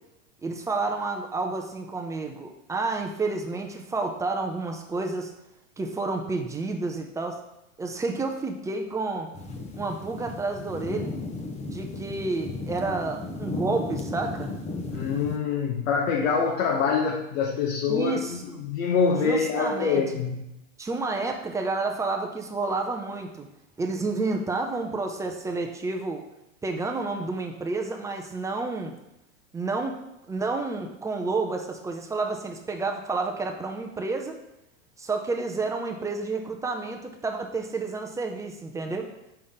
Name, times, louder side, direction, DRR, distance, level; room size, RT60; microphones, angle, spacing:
voice 1, 0.4-5.3 5.8-7.4 7.8-9.3 9.7-11.1 11.6-14.5 17.9-18.6 19.2-20.0 20.8-23.5 23.8-26.2 26.6-28.9 29.5-30.0 30.3-34.4 35.0-39.1, right 3 dB, 10° right, 3 dB, 0.5 m, -30 dB
sound 1, 9.3-15.4, left 3 dB, 15° left, 0.8 m, -35 dB
voice 2, 14.9-20.5, left 5 dB, 70° left, 0 dB, 1.3 m, -25 dB
5.6 x 5.5 x 6.5 m, 0.89 s
hypercardioid pair, 135°, 40 cm